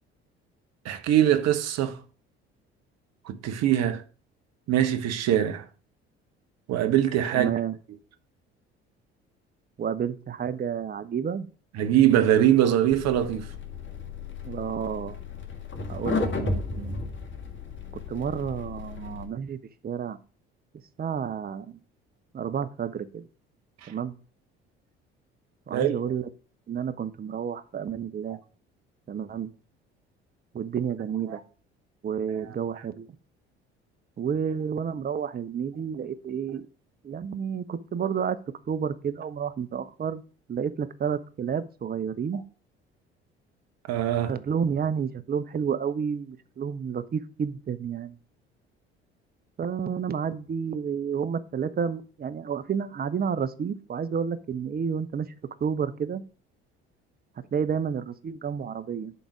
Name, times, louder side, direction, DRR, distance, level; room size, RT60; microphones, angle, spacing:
voice 1, 0.8-2.0 3.3-4.0 4.7-5.6 6.7-7.5 11.7-13.5 23.8-23.9 25.7-26.0 31.3-31.4 32.3-32.4 43.9-44.3, right 11 dB, 55° right, 1.0 m, -22 dB
voice 2, 7.3-7.8 9.8-11.5 14.4-15.2 15.9-17.0 18.1-20.2 21.0-21.8 22.3-23.3 23.9-24.1 25.7-26.3 26.7-28.4 29.1-29.5 30.5-31.4 32.0-33.1 34.2-36.7 37.0-38.4 38.7-40.2 40.5-42.4 44.3-48.1 49.6-55.3 55.6-56.2 57.5-59.1, right 7 dB, 30° right, 0.8 m, -30 dB
sound 1, 12.9-19.3, left 4 dB, 35° left, 1.7 m, -34 dB
11.0 x 3.9 x 4.8 m
figure-of-eight pair, 55°, 32 cm